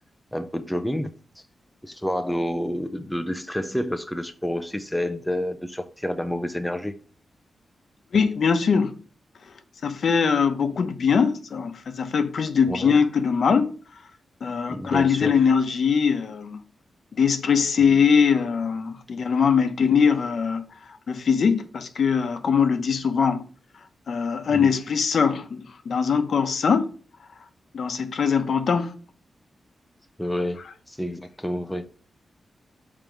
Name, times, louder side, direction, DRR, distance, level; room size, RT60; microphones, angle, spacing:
voice 1, 0.3-1.1 1.8-6.9 12.7-13.0 14.7-15.4 17.8-17.9 24.5-24.8 30.2-31.9, equal, 5° left, 0.5 m, -29 dB
voice 2, 8.1-8.9 9.8-13.7 14.4-16.6 17.1-20.7 21.1-23.4 24.1-26.9 27.7-28.9, left 6 dB, 55° left, 0.8 m, -22 dB
6.6 x 3.7 x 6.2 m
wide cardioid pair, 165°, 0 cm